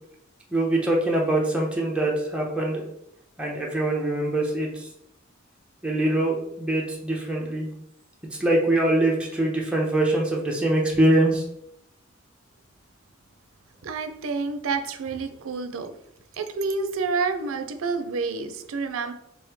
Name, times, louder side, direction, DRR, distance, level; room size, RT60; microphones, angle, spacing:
voice 1, 0.5-2.9 3.4-4.9 5.8-7.7 8.4-11.4, right 1 dB, 5° right, -2 dB, 0.7 m, -23 dB
voice 2, 13.8-15.9 16.3-19.1, right 4 dB, 85° right, 8 dB, 0.4 m, -29 dB
3.1 x 3.0 x 3.4 m, 0.77 s
head